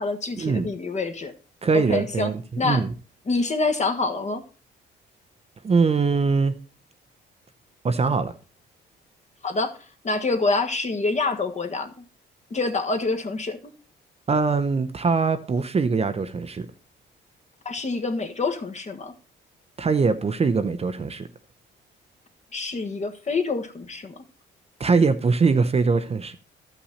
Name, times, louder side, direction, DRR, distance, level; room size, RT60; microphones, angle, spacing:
voice 1, 0.0-1.3 1.7-2.3 2.6-2.8 3.3-4.4 9.4-9.7 10.0-11.9 12.5-13.6 17.6-19.1 22.5-24.2, left 3 dB, 35° left, 1.5 m, -26 dB
voice 2, 1.6-2.9 5.6-6.5 7.8-8.3 14.3-16.7 19.8-21.3 24.8-26.3, right 4 dB, 30° right, 0.7 m, -22 dB
13.0 x 5.8 x 4.2 m
cardioid pair, 90°, 20 cm